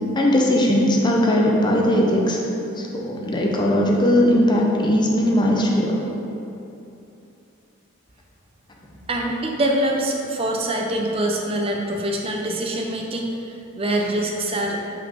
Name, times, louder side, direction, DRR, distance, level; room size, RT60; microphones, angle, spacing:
voice 1, 0.1-2.4 2.8-6.0, equal, 20° left, -1 dB, 0.5 m, -19 dB
voice 2, 9.1-13.4 13.8-14.8, right 1 dB, 25° right, 1 dB, 0.6 m, -24 dB
5.8 x 5.1 x 3.4 m, 2.8 s
head